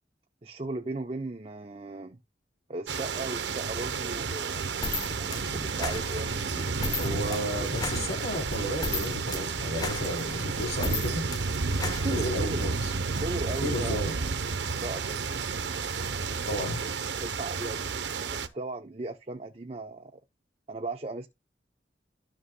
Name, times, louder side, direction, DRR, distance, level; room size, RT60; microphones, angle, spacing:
voice 1, 0.4-2.2 2.7-4.6 5.2-7.8 11.8-12.6 13.2-14.0 14.6-15.3 16.0-16.5 16.8-16.9 17.2-20.2 20.7-21.3, right 2 dB, 35° right, 0.6 m, -37 dB
sound 1, 2.9-18.5, right 4 dB, 80° right, 0.8 m, -31 dB
sound 2, 4.8-12.7, left 3 dB, 20° left, 0.8 m, -36 dB
voice 2, 7.0-11.2 12.1-12.9 13.6-14.2 16.5-16.8, equal, 60° left, 2.9 m, -33 dB
sound 3, 8.5-10.8, right 1 dB, 85° left, 2.3 m, -49 dB
12.5 x 6.2 x 2.2 m
head